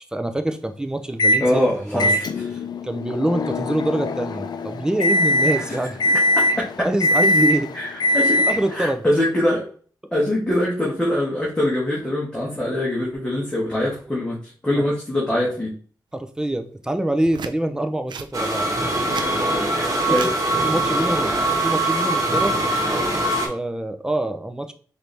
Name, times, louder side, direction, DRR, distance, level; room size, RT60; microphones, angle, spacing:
voice 1, 0.0-2.2 2.8-6.2 6.8-7.7 8.4-9.1 16.1-18.7 19.5-19.6 20.1-20.2 20.6-21.3 21.6-22.6 23.4-24.7, right 1 dB, 10° right, 8 dB, 0.5 m, -25 dB
Microwave oven, 1.2-1.5 2.0-8.8, left 1 dB, 65° left, 0.4 m, -21 dB
voice 2, 1.4-2.5 5.5-5.8 6.6-6.7 7.7-8.4 8.7-9.7 10.1-15.7 19.7-20.3, left 1 dB, 15° left, -6 dB, 1.3 m, -23 dB
sound 1, 17.3-17.6 18.1-18.3 18.9-19.3 20.1-20.4 21.7-21.9, right 6 dB, 75° right, 0.4 m, -34 dB
sound 2, 18.3-23.5, right 2 dB, 45° right, 1.2 m, -22 dB
4.6 x 2.7 x 3.3 m, 0.43 s
wide cardioid pair, 100°, 8 cm